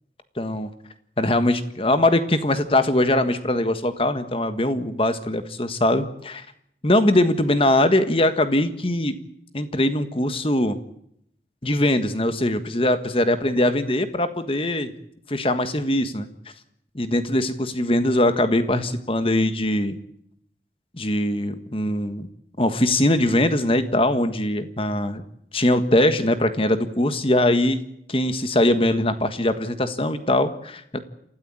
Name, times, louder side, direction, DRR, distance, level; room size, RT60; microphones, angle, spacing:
voice 1, 0.4-0.7 1.2-6.4 6.8-9.1 9.5-10.8 11.6-14.9 15.3-16.3 16.9-20.0 20.9-22.3 22.6-25.2 25.5-27.8 28.1-31.0, left 1 dB, 30° left, 10 dB, 1.5 m, -21 dB
29.0 x 13.5 x 8.8 m, 0.74 s
head